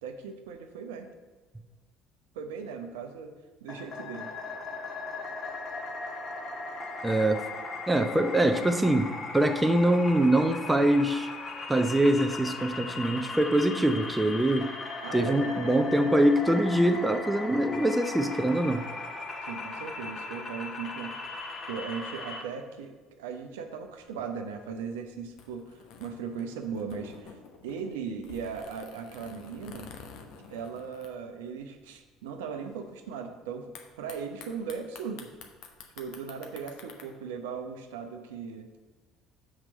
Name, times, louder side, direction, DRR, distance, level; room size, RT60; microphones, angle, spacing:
voice 1, 0.0-1.1 2.3-3.3 3.6-4.3 15.0-16.1 19.5-21.1 21.6-29.9 30.5-33.7 34.0-35.3 36.0-38.7, right 6 dB, 75° right, 5 dB, 0.8 m, -38 dB
sound 1, 3.7-22.4, left 3 dB, 40° left, 1.4 m, -38 dB
voice 2, 7.0-7.5 7.9-11.3 11.7-14.7 15.1-18.8, right 1 dB, 10° right, 7 dB, 0.7 m, -24 dB
sound 2, 23.7-31.8 32.0-32.1 32.3-32.7 33.8-37.1, left 5 dB, 65° left, 1.0 m, -50 dB
6.0 x 4.9 x 6.6 m, 1.3 s
hypercardioid pair, 60°, 0 cm